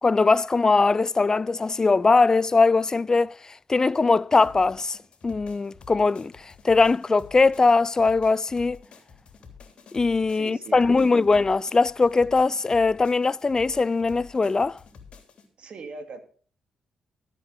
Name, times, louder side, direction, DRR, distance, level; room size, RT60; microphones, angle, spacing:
voice 1, 0.0-3.3 3.7-5.0 5.2-6.3 6.6-8.8 9.9-14.8, left 3 dB, 30° left, 0.5 m, -21 dB
sound 1, 4.4-15.5, left 5 dB, 60° left, 3.3 m, -49 dB
voice 2, 10.3-11.3 15.6-16.2, right 4 dB, 60° right, 2.5 m, -40 dB
13.5 x 8.3 x 5.3 m
supercardioid pair, 60°, 2 cm